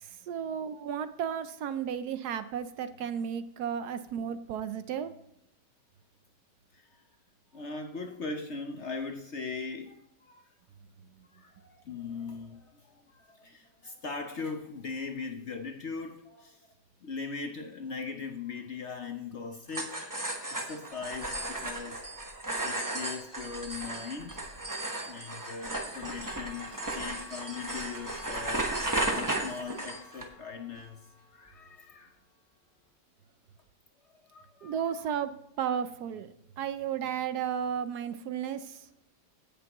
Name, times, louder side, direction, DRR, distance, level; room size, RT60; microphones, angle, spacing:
voice 1, 0.0-5.1 34.6-38.8, right 8 dB, 70° right, 12 dB, 1.1 m, -34 dB
voice 2, 7.5-10.4 11.3-16.7 17.0-20.2 20.5-24.4 25.1-28.7 29.1-31.0 31.3-32.1 34.3-35.0, left 4 dB, 55° left, 5 dB, 0.8 m, -40 dB
sound 1, 19.7-30.3, right 1 dB, 15° right, 0.9 m, -35 dB
Clock, 26.2-32.2, left 2 dB, 35° left, 1.8 m, -51 dB
16.5 x 6.9 x 3.0 m, 0.79 s
omnidirectional pair, 1.9 m